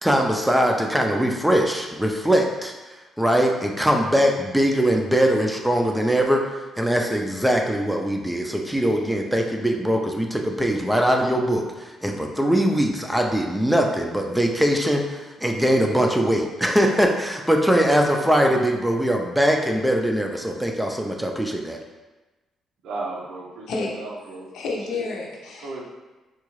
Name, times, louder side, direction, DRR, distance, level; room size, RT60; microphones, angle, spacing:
voice 1, 0.0-2.7 3.2-6.4 6.8-21.8, equal, 5° right, 2 dB, 0.4 m, -21 dB
voice 2, 22.8-24.5 24.9-25.1 25.6-25.8, right 2 dB, 80° right, -2 dB, 0.7 m, -35 dB
voice 3, 24.5-25.8, left 3 dB, 80° left, -1 dB, 0.6 m, -30 dB
3.6 x 2.3 x 3.1 m, 1.2 s
cardioid pair, 90°, 0 cm